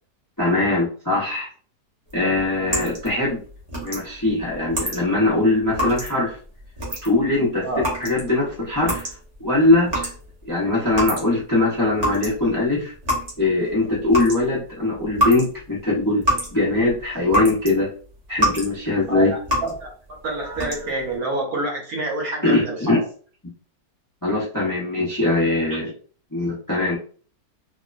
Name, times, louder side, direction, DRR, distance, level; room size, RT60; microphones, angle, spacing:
voice 1, 0.4-1.5 2.1-3.4 3.8-6.4 7.0-7.6 8.0-9.1 9.4-10.1 10.4-12.9 13.4-17.9 18.3-19.3 22.4-23.0 24.2-25.9 26.3-27.0, left 2 dB, 25° left, -6 dB, 0.4 m, -21 dB
sound 1, 2.1-11.6 11.8-17.7 18.1-18.8 19.0-19.9 20.4-21.1, equal, 35° right, 0.6 m, -27 dB
voice 2, 7.6-8.0 19.1-19.9 20.2-23.0 25.7-25.8, right 2 dB, 65° right, -1 dB, 1.2 m, -27 dB
2.9 x 2.1 x 2.4 m, 0.42 s
omnidirectional pair, 1.8 m